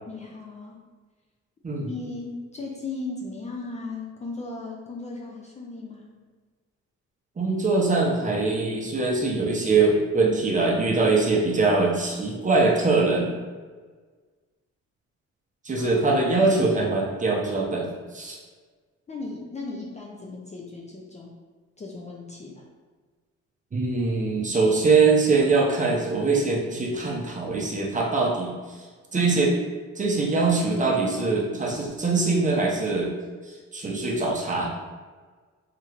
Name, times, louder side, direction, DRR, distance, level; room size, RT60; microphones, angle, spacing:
voice 1, 0.1-0.8 1.8-6.2 15.7-15.9 16.6-16.8 19.1-21.4 21.8-22.6, left 3 dB, 25° left, -2 dB, 0.4 m, -36 dB
voice 2, 7.4-13.3 15.6-17.9 18.1-18.4 23.7-28.8 29.1-29.6 30.0-33.1 33.5-34.7, right 3 dB, 25° right, -2 dB, 0.6 m, -23 dB
3.0 x 2.9 x 2.4 m, 1.4 s
cardioid pair, 90°, 30 cm